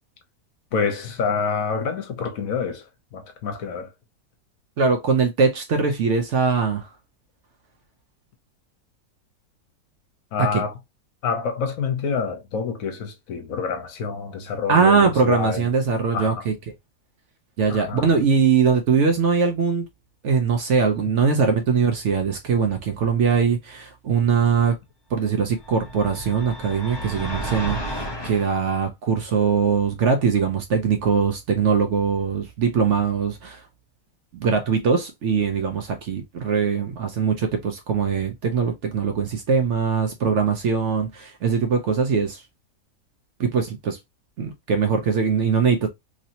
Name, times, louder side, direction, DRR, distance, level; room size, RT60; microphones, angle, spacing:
voice 1, 0.7-2.8 3.1-3.9 10.3-10.7 11.2-15.7 16.1-16.4 17.7-18.1, left 6 dB, 65° left, 1.1 m, -27 dB
voice 2, 4.8-6.9 10.4-10.6 14.7-16.5 17.6-19.9 20.2-24.8 25.1-33.6 34.3-42.4 43.4-44.0 44.4-45.9, right 5 dB, 60° right, 0.8 m, -21 dB
sound 1, 25.5-28.5, right 1 dB, 25° left, 0.5 m, -32 dB
3.1 x 2.7 x 2.7 m
omnidirectional pair, 1.6 m